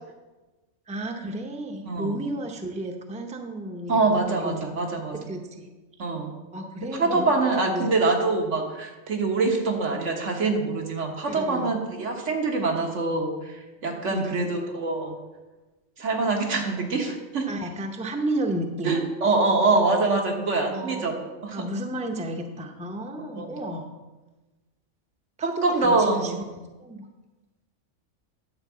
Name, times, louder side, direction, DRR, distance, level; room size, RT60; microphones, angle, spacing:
voice 1, 0.9-4.7 5.3-5.7 6.5-7.9 11.3-11.7 14.1-14.5 17.5-18.9 20.5-21.2 21.5-23.9 25.4-27.1, right 1 dB, 5° right, 3 dB, 0.7 m, -33 dB
voice 2, 1.8-2.2 3.9-5.1 6.0-6.4 7.0-15.2 16.0-17.5 18.8-21.2 21.4-21.6 23.4-23.5 25.4-26.3, right 3 dB, 75° right, 2 dB, 1.6 m, -24 dB
9.7 x 4.6 x 7.2 m, 1.2 s
omnidirectional pair, 1.3 m